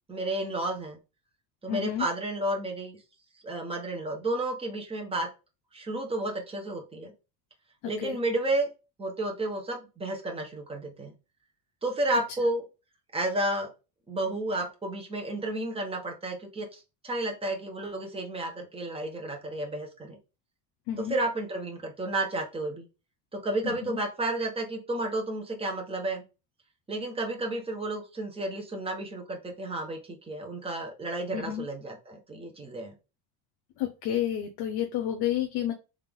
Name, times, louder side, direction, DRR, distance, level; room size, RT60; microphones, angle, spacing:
voice 1, 0.1-1.0 1.6-3.0 3.4-5.3 5.7-7.1 7.8-8.7 9.0-11.1 11.8-12.6 13.1-13.7 14.1-20.2 21.0-22.9 23.3-26.2 26.9-32.9, right 2 dB, 15° right, 2 dB, 1.1 m, -32 dB
voice 2, 1.7-2.1 8.0-8.2 20.9-21.2 23.6-24.0 31.3-31.6 33.8-35.7, left 11 dB, 75° left, 5 dB, 0.8 m, -30 dB
3.7 x 3.6 x 3.6 m, 0.29 s
cardioid pair, 155°, 39 cm